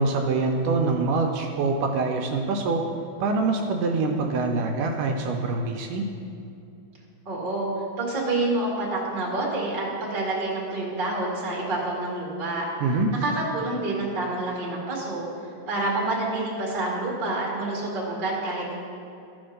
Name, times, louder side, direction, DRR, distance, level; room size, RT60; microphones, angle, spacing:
voice 1, 0.0-2.8 3.2-6.1 12.8-13.1, right 3 dB, 80° right, 2 dB, 2.1 m, -25 dB
voice 2, 7.2-7.7 8.0-12.7 13.2-15.3 15.7-18.8, right 2 dB, 25° right, -4 dB, 1.2 m, -28 dB
12.5 x 4.4 x 6.4 m, 2.6 s
omnidirectional pair, 3.9 m